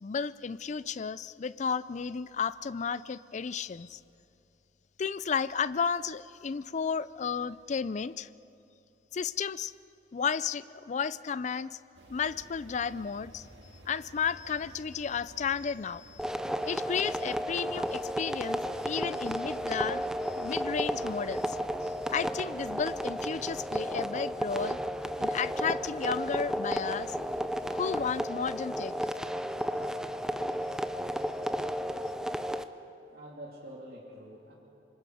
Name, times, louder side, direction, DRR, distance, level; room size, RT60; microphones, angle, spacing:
voice 1, 0.0-4.0 5.0-8.3 9.1-9.7 10.1-11.8 12.1-13.5 13.9-16.3 16.7-21.6 21.8-24.8 25.2-27.2 27.7-28.9, left 6 dB, 40° left, 16 dB, 0.4 m, -33 dB
sound 1, 11.9-28.2, right 1 dB, 80° right, 1.9 m, -55 dB
sound 2, 16.2-32.6, equal, 5° right, 0.6 m, -33 dB
voice 2, 32.4-34.5, right 1 dB, 60° right, -5 dB, 3.2 m, -48 dB
27.5 x 25.0 x 5.0 m, 2.8 s
head